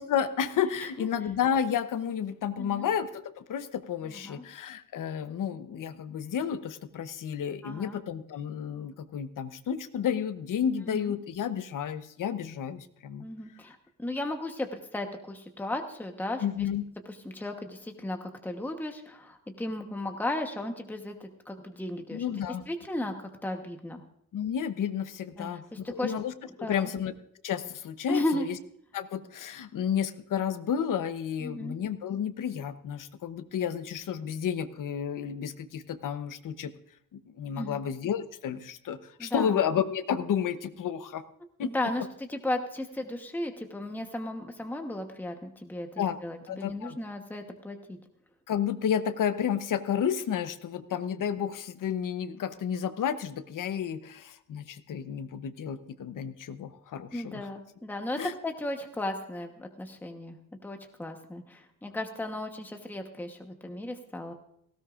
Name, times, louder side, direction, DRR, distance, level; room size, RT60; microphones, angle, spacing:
voice 1, 0.0-13.2 16.4-16.8 22.1-22.6 24.3-26.3 26.6-27.1 27.4-28.6 28.9-36.7 37.1-41.2 41.6-41.7 46.0-46.2 46.5-47.0 48.5-57.5 58.2-58.3, left 8 dB, 65° left, 12 dB, 0.9 m, -31 dB
voice 2, 2.6-2.9 4.1-4.4 7.6-8.0 10.9-11.1 13.2-16.4 17.2-22.2 22.7-23.1 23.4-24.0 25.4-26.1 26.6-26.9 28.1-28.5 31.4-31.8 37.5-37.8 39.2-39.5 41.6-48.0 57.1-64.3, left 1 dB, 5° left, 4 dB, 1.0 m, -35 dB
18.0 x 16.5 x 2.5 m, 0.71 s
wide cardioid pair, 150°, 35 cm